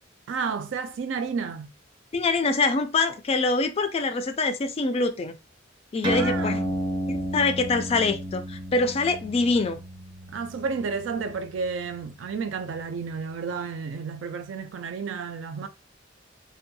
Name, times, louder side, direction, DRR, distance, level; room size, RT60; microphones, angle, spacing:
voice 1, 0.3-1.7 6.1-6.7 10.3-15.7, right 5 dB, 70° right, 0.3 m, -31 dB
voice 2, 2.1-5.3 5.9-6.6 7.1-9.8, left 3 dB, 30° left, 0.3 m, -24 dB
sound 1, 6.0-13.0, equal, 25° right, 0.6 m, -32 dB
2.6 x 2.2 x 2.6 m
head